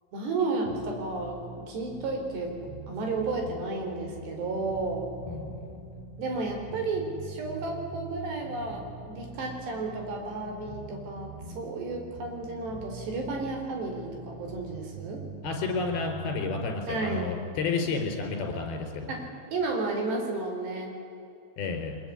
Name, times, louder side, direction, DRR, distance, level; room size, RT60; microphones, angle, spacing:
voice 1, 0.1-1.4 1.7-2.5 2.9-5.1 6.2-15.2 16.9-17.3 19.1-20.9, right 3 dB, 60° right, 2 dB, 6.3 m, -32 dB
sound 1, 0.6-16.7, right 3 dB, 10° right, 1.7 m, -44 dB
voice 2, 5.3-5.8 15.4-19.1 21.6-22.0, left 4 dB, 55° left, 4 dB, 5.5 m, -31 dB
23.5 x 21.5 x 9.9 m, 2.6 s
omnidirectional pair, 5.5 m